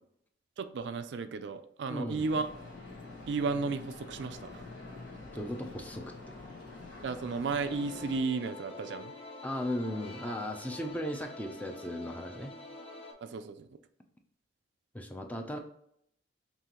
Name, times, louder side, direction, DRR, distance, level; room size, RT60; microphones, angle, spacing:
voice 1, 0.6-2.5 3.3-4.6 7.0-9.1 13.2-13.7, right 4 dB, 65° right, 10 dB, 0.4 m, -34 dB
voice 2, 1.9-2.2 5.3-6.0 9.4-12.5 14.9-15.6, left 1 dB, 10° left, 3 dB, 0.5 m, -36 dB
sound 1, 2.2-8.2, left 3 dB, 75° left, 1.2 m, -46 dB
sound 2, 7.6-13.1, left 2 dB, 30° left, 0.9 m, -47 dB
5.5 x 2.9 x 2.9 m, 0.70 s
head